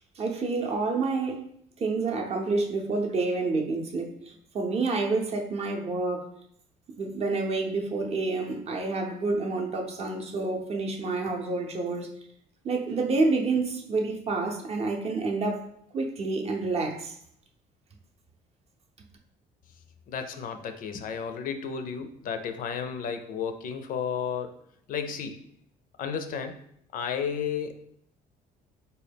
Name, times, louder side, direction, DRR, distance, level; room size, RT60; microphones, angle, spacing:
voice 1, 0.2-1.5 1.8-6.3 7.0-12.1 12.6-15.7 15.9-17.2, right 3 dB, 40° right, 0.6 m, -28 dB
voice 2, 20.1-24.6 24.9-25.4 26.0-26.6 26.9-27.8, left 7 dB, 55° left, 0.4 m, -33 dB
3.9 x 2.2 x 3.4 m
cardioid pair, 110°, 17 cm